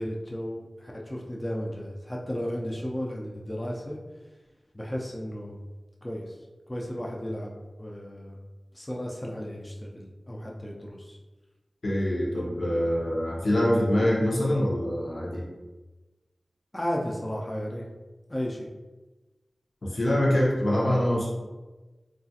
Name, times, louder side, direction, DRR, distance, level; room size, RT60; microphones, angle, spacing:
voice 1, 0.0-4.0 4.7-5.6 6.0-6.3 6.7-7.5 7.8-8.4 8.7-11.2 16.7-17.9 18.3-18.7, equal, 20° left, -2 dB, 0.4 m, -34 dB
voice 2, 11.8-15.4 19.8-21.3, left 1 dB, 70° left, -4 dB, 0.7 m, -24 dB
2.9 x 2.4 x 2.7 m, 1.2 s
wide cardioid pair, 45°, 0 cm